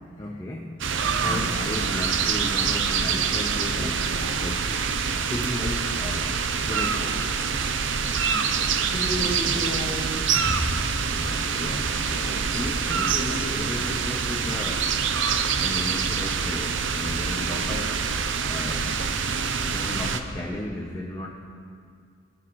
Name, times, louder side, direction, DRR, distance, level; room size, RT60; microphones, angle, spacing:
voice 1, 0.2-0.7 1.2-4.8 5.2-7.3 11.1-14.9 15.6-18.0 18.5-19.0 19.6-21.3, left 1 dB, 15° left, -2 dB, 0.8 m, -34 dB
sound 1, 0.8-20.2, right 6 dB, 70° right, 0.6 m, -26 dB
voice 2, 8.3-10.8 18.7-18.9, equal, 45° left, -4 dB, 2.2 m, -32 dB
23.5 x 7.9 x 3.2 m, 2.3 s
head